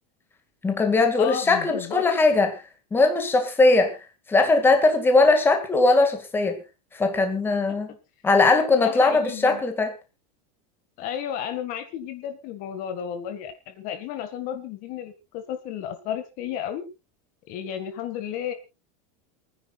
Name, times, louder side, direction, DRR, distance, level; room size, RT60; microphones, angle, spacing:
voice 1, 0.6-2.6 2.9-4.0 4.3-6.6 7.0-7.9 8.2-9.9, left 3 dB, 10° left, 2.0 m, -20 dB
voice 2, 1.2-2.0 8.7-9.6 11.0-16.8 17.5-18.5, left 10 dB, 40° left, 1.8 m, -33 dB
28.5 x 10.0 x 2.4 m
supercardioid pair, 160°, 21 cm